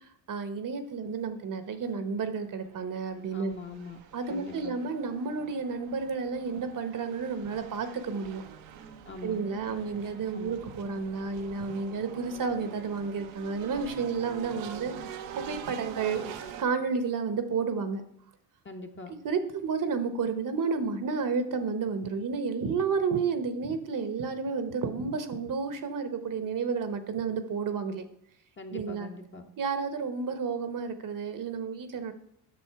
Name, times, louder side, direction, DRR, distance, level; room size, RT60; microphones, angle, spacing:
voice 1, 0.3-3.5 4.1-8.4 9.2-16.2 16.6-18.0 19.1-28.0 28.7-29.1 29.6-32.1, right 5 dB, 45° right, 9 dB, 1.1 m, -31 dB
sound 1, 1.9-2.0 2.5-16.6, right 8 dB, 75° right, 1.0 m, -45 dB
voice 2, 3.3-4.0 4.3-4.8 9.0-9.4 10.3-10.6 18.6-19.1 28.6-29.5, left 2 dB, 25° left, 4 dB, 1.1 m, -42 dB
7.8 x 6.2 x 4.7 m, 0.73 s
supercardioid pair, 80°, 45 cm